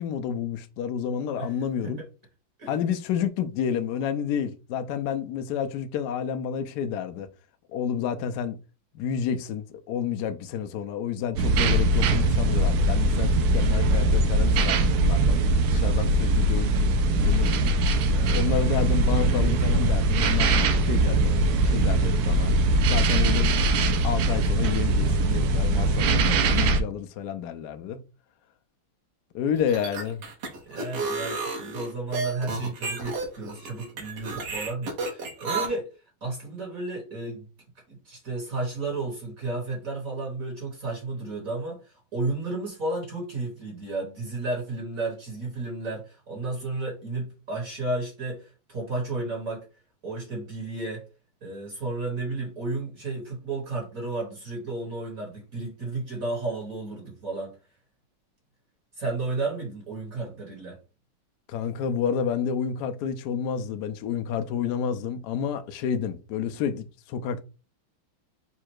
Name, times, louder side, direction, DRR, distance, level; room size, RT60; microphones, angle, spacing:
voice 1, 0.0-2.0 2.7-7.3 7.7-8.6 8.9-15.4 15.7-17.7 18.3-20.5 20.8-21.4 21.6-22.5 22.9-23.5 24.0-28.0 29.3-30.2 61.5-67.4, left 8 dB, 75° left, 0.9 m, -30 dB
sound 1, 11.4-26.8, right 2 dB, 80° right, 0.8 m, -21 dB
voice 2, 18.1-18.5 30.7-35.9 36.2-37.5 37.9-49.6 50.0-51.0 51.4-57.6 59.0-60.8, right 2 dB, 45° right, 1.7 m, -33 dB
sound 2, 29.6-35.7, right 3 dB, 60° right, 1.6 m, -32 dB
4.2 x 2.4 x 4.5 m
omnidirectional pair, 2.2 m